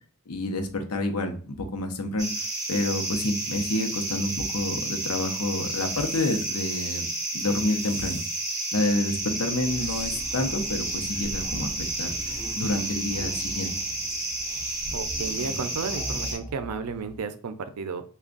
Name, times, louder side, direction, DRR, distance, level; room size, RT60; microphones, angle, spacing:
voice 1, 0.3-2.3 2.7-7.1 7.3-8.2 8.7-11.7 12.0-13.7, left 2 dB, 75° left, 5 dB, 0.7 m, -28 dB
sound 1, 2.2-16.4, right 2 dB, 15° right, 1.4 m, -31 dB
sound 2, 9.1-17.2, equal, 15° left, 0.7 m, -40 dB
voice 2, 14.9-18.0, right 5 dB, 90° right, 10 dB, 0.5 m, -33 dB
3.3 x 2.3 x 3.8 m, 0.42 s
head